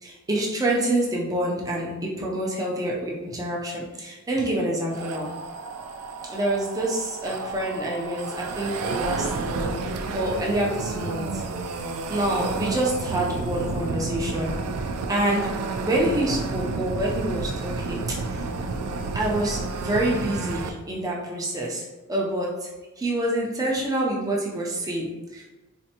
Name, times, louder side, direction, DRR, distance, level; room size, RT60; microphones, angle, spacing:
voice 1, 0.0-5.3 6.2-9.7 10.1-11.4 12.1-14.5 15.1-18.5 19.1-21.8 22.1-22.7 23.0-25.5, right 1 dB, 15° right, -3 dB, 0.5 m, -27 dB
sound 1, 4.9-20.7, right 3 dB, 85° right, 0.4 m, -31 dB
4.3 x 2.5 x 2.8 m, 1.1 s
head